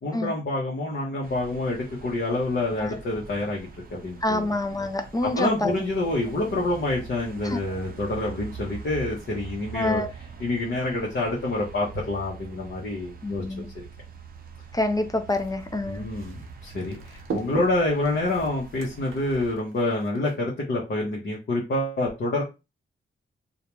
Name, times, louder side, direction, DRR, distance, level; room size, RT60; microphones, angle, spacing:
voice 1, 0.0-4.5 5.3-10.0 10.4-13.4 13.7-13.8 15.8-22.4, left 2 dB, 55° left, -4 dB, 0.8 m, -27 dB
sound 1, 1.2-19.6, right 4 dB, 45° right, 0.5 m, -43 dB
voice 2, 4.2-5.7 7.4-7.6 9.7-10.1 13.2-13.7 14.7-16.0, left 2 dB, 20° left, 7 dB, 0.4 m, -27 dB
sound 2, 15.3-20.4, right 5 dB, 75° right, 0.7 m, -39 dB
2.4 x 2.2 x 3.0 m, 0.27 s
cardioid pair, 90°, 21 cm